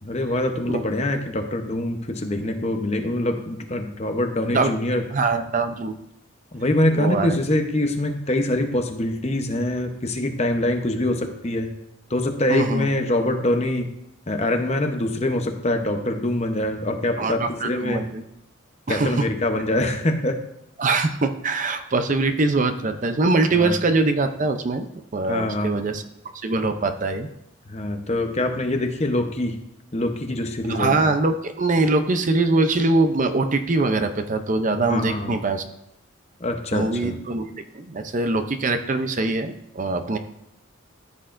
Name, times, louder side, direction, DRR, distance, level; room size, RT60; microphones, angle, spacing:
voice 1, 0.0-5.0 6.5-11.7 12.1-13.9 14.3-18.0 18.9-20.4 23.5-23.8 25.3-25.8 27.7-29.6 29.9-30.9 34.9-35.3 36.4-37.2, left 1 dB, 30° left, 4 dB, 0.8 m, -24 dB
voice 2, 5.1-6.0 6.9-7.3 12.5-12.9 17.2-18.2 18.9-19.2 20.8-24.9 25.1-26.0 26.3-27.3 30.7-35.6 36.7-40.2, right 3 dB, 35° right, 8 dB, 0.5 m, -23 dB
14.0 x 8.0 x 2.6 m, 0.80 s
head